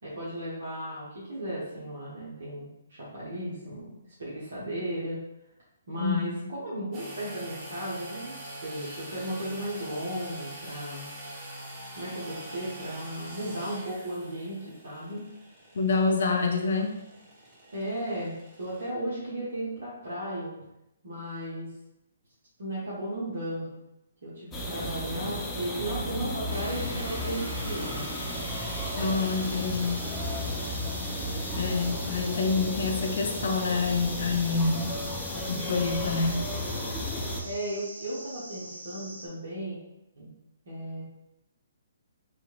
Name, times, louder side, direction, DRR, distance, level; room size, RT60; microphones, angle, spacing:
voice 1, 0.0-3.9 4.2-5.2 5.9-8.4 8.6-11.1 11.9-15.2 17.7-20.6 21.0-21.7 22.6-23.7 24.2-28.1 37.4-39.8 40.1-40.3 40.6-41.0, right 1 dB, 65° right, -8 dB, 1.2 m, -35 dB
voice 2, 6.0-6.3 15.7-16.9 29.0-30.1 31.6-35.0 35.5-36.4, left 4 dB, 65° left, 3 dB, 0.5 m, -27 dB
sound 1, 6.9-18.9, right 1 dB, 30° right, 0.9 m, -44 dB
sound 2, 24.5-37.4, left 1 dB, 15° left, 0.6 m, -34 dB
sound 3, 26.5-39.3, right 1 dB, 85° right, 0.8 m, -43 dB
3.3 x 2.9 x 2.4 m, 0.88 s
figure-of-eight pair, 135°, 0 cm